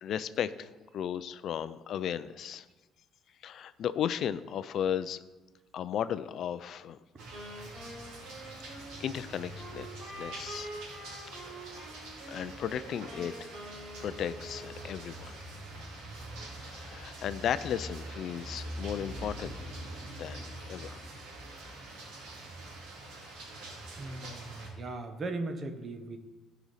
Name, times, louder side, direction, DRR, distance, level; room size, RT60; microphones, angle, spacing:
voice 1, 0.0-2.7 3.4-5.2 5.7-7.0 9.0-10.7 11.4-11.8 12.3-13.5 14.0-15.4 16.6-19.6 20.2-21.0, left 9 dB, 45° left, 14 dB, 0.4 m, -35 dB
sound 1, 7.2-24.7, right 1 dB, 85° right, 2.5 m, -44 dB
Wind instrument woodwind instrument, 7.3-15.2, right 1 dB, 45° right, 3.6 m, -46 dB
voice 2, 23.9-26.2, right 2 dB, 25° right, 7 dB, 0.8 m, -38 dB
15.0 x 5.0 x 4.1 m, 1.2 s
cardioid pair, 170°, 0 cm